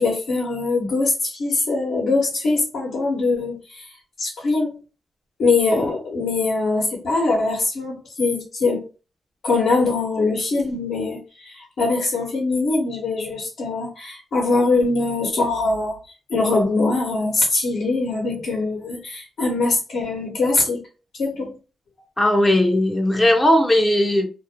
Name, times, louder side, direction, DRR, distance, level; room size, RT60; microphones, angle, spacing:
voice 1, 0.0-3.9 4.2-4.8 5.4-8.9 9.4-16.0 16.3-20.8 21.2-21.5, left 3 dB, 80° left, 0.9 m, -22 dB
voice 2, 22.2-24.3, left 1 dB, 20° left, 0.5 m, -17 dB
2.5 x 2.0 x 2.7 m
cardioid pair, 60°, 0 cm